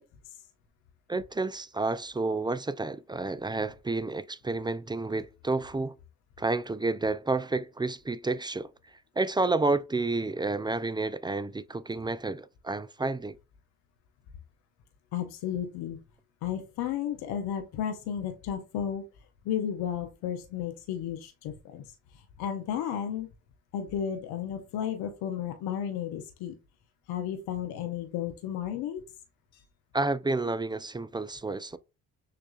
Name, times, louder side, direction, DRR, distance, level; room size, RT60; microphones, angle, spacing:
voice 1, 1.1-5.9 6.4-8.7 9.2-13.4 29.9-31.8, right 3 dB, 15° right, 0.3 m, -30 dB
voice 2, 15.1-16.0 16.4-19.0 19.4-23.3 23.7-26.5 27.1-29.0 29.5-29.6, left 9 dB, 90° left, 0.6 m, -33 dB
6.5 x 2.3 x 2.4 m
supercardioid pair, 45°, 37 cm